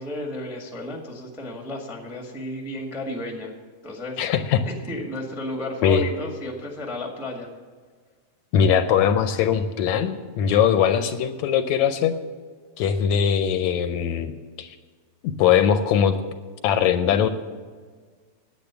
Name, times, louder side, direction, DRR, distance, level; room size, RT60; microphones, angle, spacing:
voice 1, 0.0-3.5 3.8-4.2 4.6-7.5, left 1 dB, ahead, 1 dB, 0.8 m, -33 dB
voice 2, 4.2-4.6 5.8-6.0 8.5-12.1 12.8-14.3 14.6-14.7 15.2-16.2 16.6-17.3, left 8 dB, 75° left, 9 dB, 1.8 m, -21 dB
10.5 x 9.1 x 7.0 m, 1.6 s
omnidirectional pair, 3.5 m